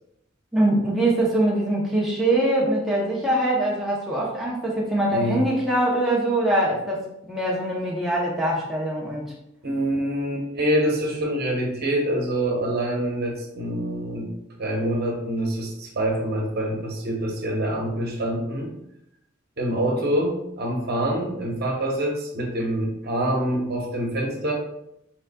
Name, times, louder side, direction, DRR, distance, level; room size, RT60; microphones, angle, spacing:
voice 1, 0.5-9.3, right 1 dB, ahead, -5 dB, 0.7 m, -23 dB
voice 2, 5.1-5.4 9.6-14.3 14.6-18.7 19.6-24.5, right 1 dB, 50° right, 0 dB, 1.0 m, -25 dB
5.4 x 3.6 x 2.3 m, 0.79 s
head